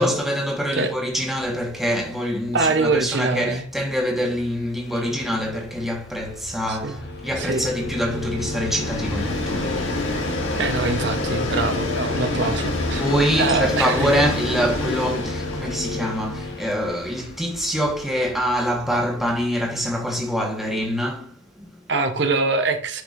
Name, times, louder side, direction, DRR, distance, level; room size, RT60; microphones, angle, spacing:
voice 1, 0.0-10.0 13.0-21.8, equal, ahead, 1.1 m, -25 dB
Train, 1.4-1.5 1.9-2.0 2.2-19.6, left 2 dB, 75° left, 1.9 m, -30 dB
voice 2, 2.5-3.6 6.7-7.0 7.4-7.7 10.6-13.0 13.4-14.1 21.9-23.0, right 3 dB, 55° right, 0.7 m, -23 dB
sound 1, 4.8-6.0 7.0-16.7, left 2 dB, 55° left, 1.1 m, -32 dB
10.5 x 4.8 x 2.5 m
head